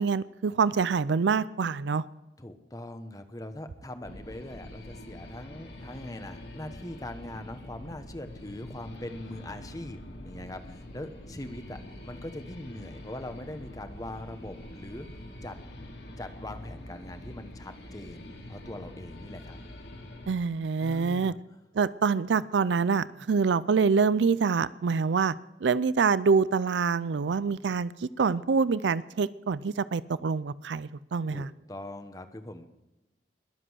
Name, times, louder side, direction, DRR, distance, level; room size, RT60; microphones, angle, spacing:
voice 1, 0.0-2.0 20.3-21.3 21.8-25.3 25.6-31.5, right 5 dB, 85° right, 18 dB, 0.4 m, -26 dB
voice 2, 2.4-10.0 10.2-15.1 15.4-15.6 16.2-19.6 20.8-21.4 31.3-32.7, left 1 dB, 20° left, 9 dB, 1.0 m, -41 dB
sound 1, 4.0-20.3, left 1 dB, 70° left, 2.6 m, -45 dB
21.0 x 7.6 x 6.3 m, 0.97 s
head